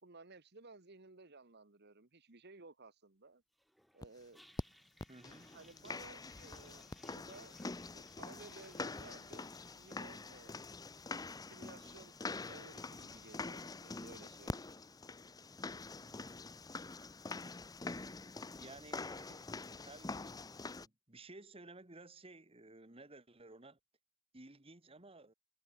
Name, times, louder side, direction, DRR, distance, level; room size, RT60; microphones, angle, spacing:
voice 1, 0.0-3.4 3.9-4.4 5.5-7.6 7.9-10.6 11.5-12.1 12.5-14.7, right 3 dB, 50° right, 1.5 m, -57 dB
Toilet flush, 3.5-18.7, equal, ahead, 2.7 m, -69 dB
sound 1, 4.0-4.1 4.6-4.7 5.0-20.9, left 3 dB, 15° left, 0.6 m, -45 dB
voice 2, 5.1-5.5 18.6-20.3 20.8-23.8 24.3-25.3, right 2 dB, 25° right, 1.6 m, -55 dB
head